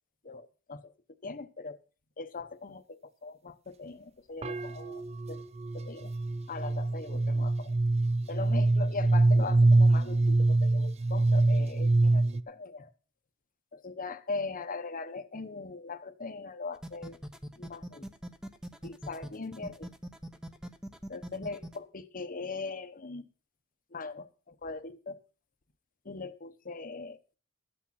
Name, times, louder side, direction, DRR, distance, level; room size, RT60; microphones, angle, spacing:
voice 1, 0.2-0.9 1.2-1.8 2.2-5.4 5.7-6.1 6.5-7.7 8.3-12.9 13.7-17.2 17.6-18.1 18.8-19.9 21.1-23.2 23.9-25.2 26.0-27.4, left 3 dB, 40° left, 9 dB, 1.0 m, -40 dB
sound 1, 4.4-12.4, right 2 dB, 30° right, 0.5 m, -25 dB
sound 2, 16.7-21.8, right 1 dB, 5° right, 0.9 m, -42 dB
13.0 x 8.6 x 5.8 m, 0.37 s
head